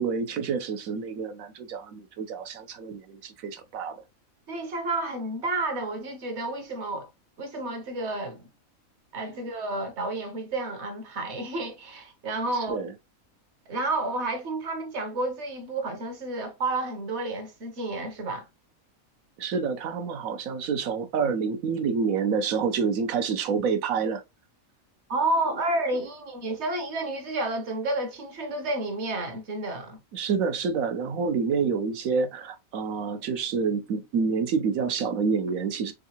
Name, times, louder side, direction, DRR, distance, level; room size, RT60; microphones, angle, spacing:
voice 1, 0.0-4.0 12.5-12.9 19.4-24.2 30.1-35.9, right 5 dB, 80° right, 1.1 m, -28 dB
voice 2, 4.5-7.1 7.4-8.5 9.1-12.8 13.7-18.5 25.1-30.0, right 2 dB, 55° right, 1.1 m, -30 dB
3.8 x 3.5 x 2.8 m
omnidirectional pair, 1.4 m